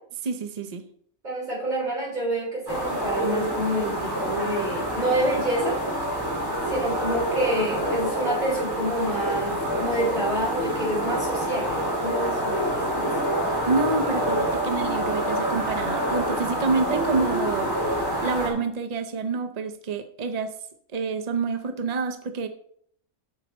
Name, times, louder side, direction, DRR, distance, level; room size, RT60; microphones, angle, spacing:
voice 1, 0.2-0.8 13.7-20.5 20.9-22.5, right 4 dB, 65° right, 8 dB, 0.4 m, -28 dB
voice 2, 1.2-5.8 6.7-13.1, right 1 dB, 30° right, -3 dB, 3.9 m, -28 dB
sound 1, 2.7-18.5, right 1 dB, 15° right, 2.8 m, -27 dB
8.7 x 6.8 x 4.2 m, 0.63 s
omnidirectional pair, 1.6 m